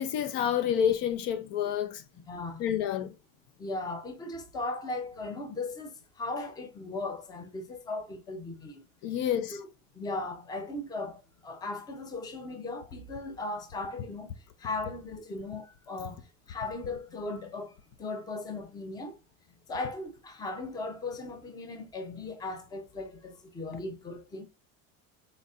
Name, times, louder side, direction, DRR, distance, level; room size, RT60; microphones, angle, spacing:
voice 1, 0.0-2.0 2.6-3.1 9.0-9.6, left 9 dB, 50° left, 0.6 m, -28 dB
voice 2, 2.3-2.6 3.6-8.8 9.5-9.6 10.0-14.3 14.6-16.2 16.5-17.7 18.0-19.1 19.7-24.4, left 2 dB, 10° left, 0.5 m, -37 dB
4.2 x 4.0 x 2.4 m
cardioid pair, 155°, 42 cm